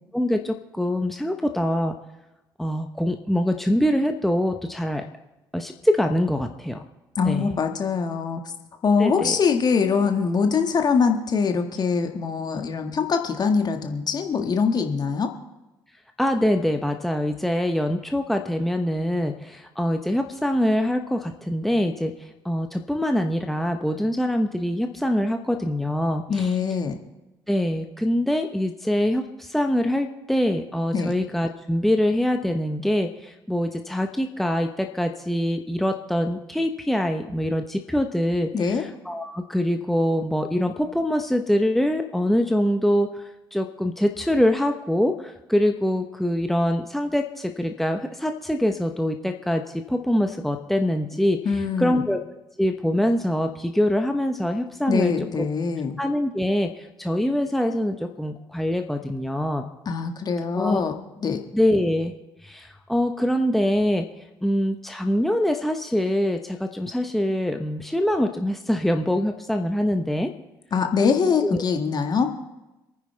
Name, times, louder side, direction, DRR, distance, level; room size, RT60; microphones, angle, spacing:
voice 1, 0.1-2.0 2.6-5.0 5.5-6.8 7.3-7.6 9.0-9.4 16.2-26.5 27.5-43.2 43.5-51.4 51.8-52.2 52.6-55.1 56.0-59.7 60.5-60.8 61.5-62.1 62.4-64.1 64.4-70.3 71.4-71.6, left 1 dB, ahead, 5 dB, 1.1 m, -24 dB
voice 2, 7.2-8.4 8.8-15.3 26.3-27.0 30.9-31.1 38.5-38.9 51.4-52.1 54.9-56.0 59.9-60.9 61.2-61.4 70.7-72.3, left 5 dB, 35° left, 5 dB, 1.8 m, -23 dB
27.5 x 9.7 x 3.5 m, 1.0 s
figure-of-eight pair, 50°, 11 cm